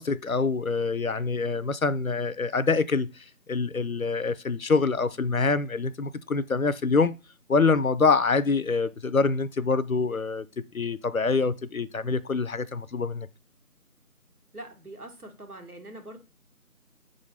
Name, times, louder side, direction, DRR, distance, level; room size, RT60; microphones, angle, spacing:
voice 1, 0.0-7.2 7.5-13.3, left 4 dB, 65° left, 0.5 m, -25 dB
voice 2, 14.5-16.2, right 1 dB, 75° right, 1.8 m, -43 dB
4.8 x 3.8 x 5.6 m
figure-of-eight pair, 180°, 45 cm